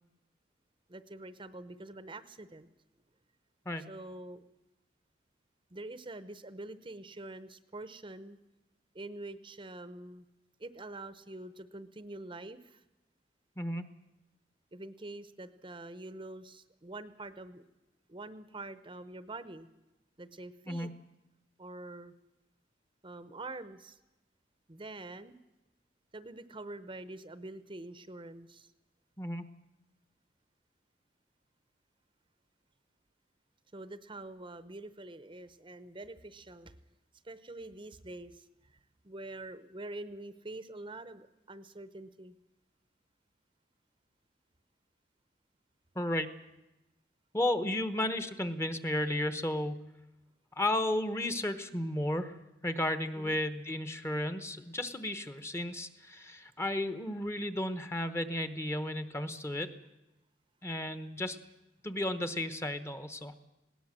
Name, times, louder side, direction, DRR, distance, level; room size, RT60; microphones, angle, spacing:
voice 1, 0.9-2.7 3.9-4.5 5.7-8.4 8.9-10.2 10.6-12.8 14.7-17.6 18.1-19.7 20.2-20.9 21.6-22.1 23.0-24.0 24.7-25.4 26.1-28.7 33.7-36.7 37.2-38.8 39.0-42.4 53.2-53.4, right 2 dB, 30° right, 13 dB, 0.8 m, -45 dB
voice 2, 45.9-46.3 47.3-49.8 50.6-52.4 52.6-59.7 60.6-61.4 61.8-63.3, left 1 dB, 15° left, 11 dB, 1.0 m, -33 dB
19.5 x 17.5 x 7.5 m, 0.97 s
head